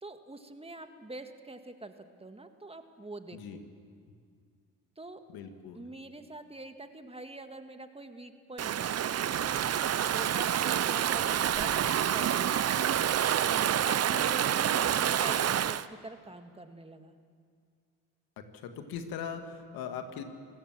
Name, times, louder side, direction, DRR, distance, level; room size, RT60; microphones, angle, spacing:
voice 1, 0.0-3.6 5.0-5.2 5.7-12.6 13.7-17.1, right 2 dB, 15° right, 7 dB, 1.9 m, -45 dB
voice 2, 5.3-5.8 18.4-20.2, left 7 dB, 80° left, 7 dB, 2.0 m, -40 dB
Stream / Ocean, 8.6-15.8, right 10 dB, 45° right, 0.7 m, -28 dB
27.0 x 17.5 x 7.5 m, 2.1 s
supercardioid pair, 65°, 35 cm